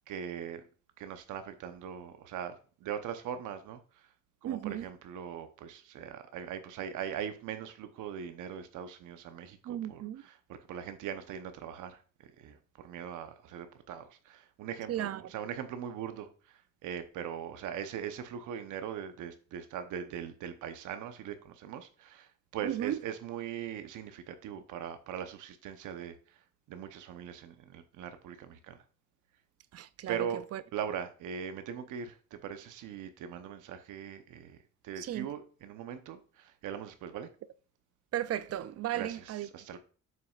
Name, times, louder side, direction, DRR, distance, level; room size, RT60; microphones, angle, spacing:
voice 1, 0.1-0.6 1.0-2.6 2.8-3.8 4.4-12.0 12.4-16.3 16.8-26.2 26.7-28.8 30.1-30.4 30.7-34.6 34.8-37.3 38.9-39.2 39.5-39.8, right 8 dB, 85° right, 0.9 m, -40 dB
voice 2, 4.4-4.9 9.6-10.2 14.9-15.2 22.6-23.0 29.7-30.6 35.0-35.3 38.1-39.5, right 12 dB, 55° right, 0.5 m, -35 dB
7.6 x 6.0 x 2.4 m
cardioid pair, 90°, 30 cm